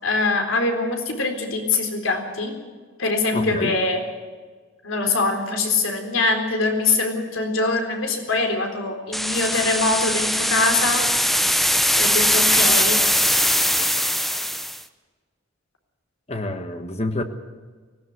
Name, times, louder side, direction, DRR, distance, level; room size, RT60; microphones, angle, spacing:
voice 1, 0.0-2.5 3.0-4.0 4.8-11.1 12.0-13.0, left 3 dB, 80° left, 4 dB, 3.9 m, -23 dB
voice 2, 3.3-3.8 16.3-17.2, left 1 dB, 35° left, 7 dB, 1.3 m, -27 dB
sound 1, 9.1-14.8, equal, ahead, 0.8 m, -20 dB
19.0 x 17.5 x 8.1 m, 1.5 s
head